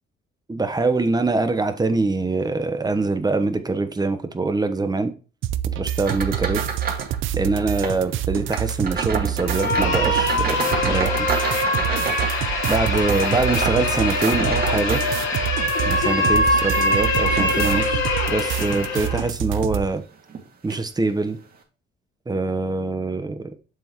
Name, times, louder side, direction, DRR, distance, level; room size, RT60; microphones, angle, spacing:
voice 1, 0.5-5.1 5.8-6.6 7.3-11.3 12.7-15.0 15.8-18.0 18.3-20.0 20.6-21.4 22.3-23.5, right 3 dB, 20° right, 9 dB, 1.2 m, -24 dB
sound 1, 5.4-19.8, right 11 dB, 80° right, 0.6 m, -27 dB
sound 2, 6.0-7.2 7.4-8.0 8.5-15.5 16.1-17.9 18.5-18.7 19.3-19.4 20.3-20.4 20.7-20.9, right 5 dB, 50° right, 2.3 m, -30 dB
sound 3, 9.4-19.3, left 2 dB, 85° left, 3.1 m, -23 dB
7.6 x 6.3 x 3.1 m, 0.34 s
cardioid pair, 90°, 20 cm